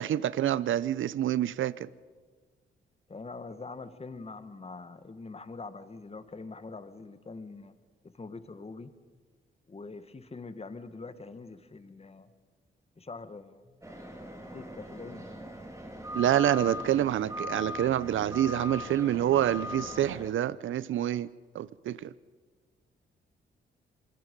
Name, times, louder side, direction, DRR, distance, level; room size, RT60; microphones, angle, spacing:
voice 1, 0.0-1.9 16.1-22.1, right 11 dB, 75° right, 0.6 m, -27 dB
voice 2, 3.1-7.7 8.1-8.9 9.7-12.3 13.0-13.8 14.5-15.3, left 3 dB, 30° left, 1.6 m, -44 dB
sound 1, 13.8-20.3, left 1 dB, 15° right, 3.9 m, -40 dB
27.0 x 22.0 x 5.4 m
cardioid pair, 75°, 20 cm